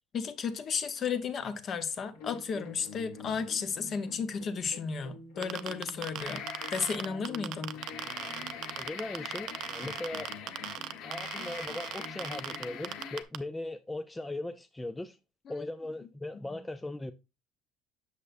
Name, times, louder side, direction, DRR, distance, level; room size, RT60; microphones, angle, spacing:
voice 1, 0.1-7.8 15.5-15.6 16.5-16.6, left 6 dB, 35° left, 0.9 m, -34 dB
sound 1, 2.1-13.1, left 3 dB, 90° left, 2.7 m, -48 dB
sound 2, 5.4-13.4, right 13 dB, 50° right, 0.5 m, -38 dB
sound 3, 6.2-7.2 7.6-13.2, left 7 dB, 60° left, 1.1 m, -43 dB
voice 2, 8.8-10.3 11.0-15.2 15.5-17.1, left 2 dB, 10° left, 0.4 m, -39 dB
8.3 x 6.7 x 2.5 m
cardioid pair, 150°, 0 cm